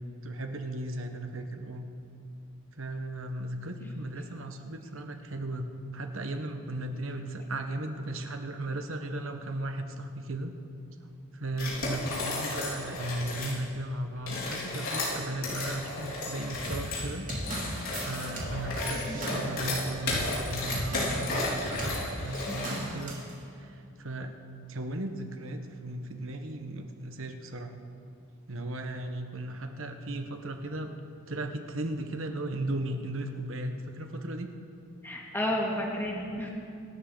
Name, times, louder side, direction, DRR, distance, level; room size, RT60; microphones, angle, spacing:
voice 1, 0.2-1.9 2.8-10.5 11.3-17.3 18.0-23.2 23.6-24.4 24.7-27.7 28.5-30.9 31.3-34.5, right 1 dB, 70° right, 6 dB, 1.3 m, -36 dB
sound 1, 11.5-13.6 14.2-23.0, left 2 dB, 70° left, 4.6 m, -34 dB
sound 2, 16.6-21.4 21.8-22.0 22.6-23.3, right 1 dB, 35° right, 3.1 m, -36 dB
voice 2, 18.8-19.2 22.4-22.6 35.0-36.5, left 1 dB, 10° left, -2 dB, 2.1 m, -32 dB
26.0 x 13.0 x 4.0 m, 2.5 s
head